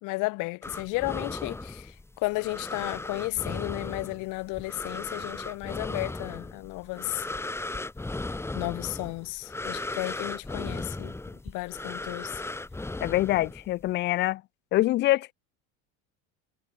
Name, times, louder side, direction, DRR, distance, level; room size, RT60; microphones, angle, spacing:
voice 1, 0.0-1.9 2.2-7.3 8.5-11.1 11.5-12.4, left 25 dB, 50° left, 1.4 m, -33 dB
sound 1, 0.6-13.9, left 2 dB, 5° left, 3.3 m, -37 dB
voice 2, 13.0-14.4 14.7-15.3, left 16 dB, 30° left, 0.5 m, -25 dB
cardioid pair, 160°, 39 cm